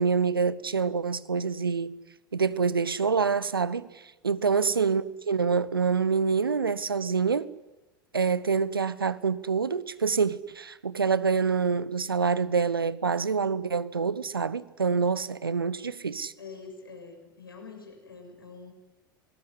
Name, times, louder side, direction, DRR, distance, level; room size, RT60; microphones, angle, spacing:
voice 1, 0.0-1.9 2.3-3.9 4.2-7.5 8.1-16.3, right 5 dB, 80° right, 1.0 m, -26 dB
voice 2, 4.5-4.8 16.4-18.7, left 4 dB, 80° left, 6.9 m, -45 dB
25.0 x 20.0 x 9.9 m
figure-of-eight pair, 80°, 12 cm